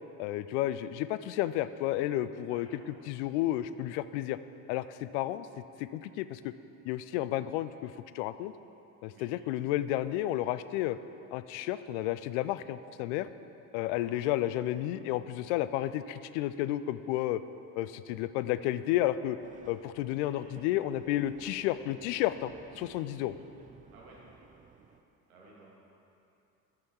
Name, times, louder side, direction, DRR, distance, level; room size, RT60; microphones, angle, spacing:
voice 1, 0.2-2.7 3.1-4.4 4.7-5.5 5.8-6.5 6.8-8.5 9.0-11.0 11.3-13.3 13.7-17.4 17.8-19.4 19.7-23.3, left 14 dB, 50° left, 14 dB, 0.5 m, -32 dB
voice 2, 2.5-3.0 9.0-9.3 13.7-14.0 20.0-20.6 23.9-24.2 25.3-25.7, right 1 dB, 70° right, -5 dB, 2.3 m, -56 dB
sound 1, 19.4-25.0, right 5 dB, 20° right, 0.5 m, -55 dB
13.5 x 5.8 x 4.6 m, 2.8 s
figure-of-eight pair, 60°, 45 cm